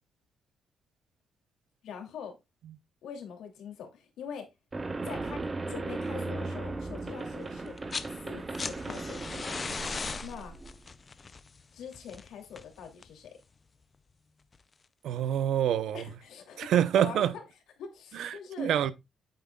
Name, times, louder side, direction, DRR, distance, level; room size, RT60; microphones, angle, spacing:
voice 1, 1.8-2.4 3.0-4.5 5.0-7.8 8.0-9.6 10.2-10.5 11.7-13.4 15.9-17.4 17.8-18.7, left 6 dB, 85° left, 2.8 m, -43 dB
sound 1, 4.7-10.8, right 3 dB, 20° right, 0.8 m, -37 dB
sound 2, 7.7-8.1 8.4-13.3 14.5-14.6, left 4 dB, 25° left, 0.4 m, -38 dB
voice 2, 15.0-16.0 16.6-17.3 18.2-18.9, right 10 dB, 75° right, 0.8 m, -26 dB
9.1 x 7.9 x 2.3 m
cardioid pair, 175°, 0 cm